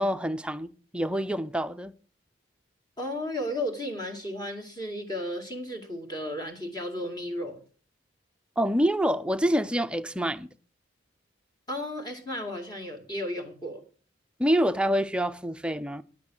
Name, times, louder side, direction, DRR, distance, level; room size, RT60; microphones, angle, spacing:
voice 1, 0.0-1.9 8.6-10.5 14.4-16.0, equal, 5° right, 0.5 m, -26 dB
voice 2, 3.0-7.6 11.7-13.8, left 1 dB, 20° left, 2.3 m, -34 dB
10.5 x 8.5 x 6.3 m
head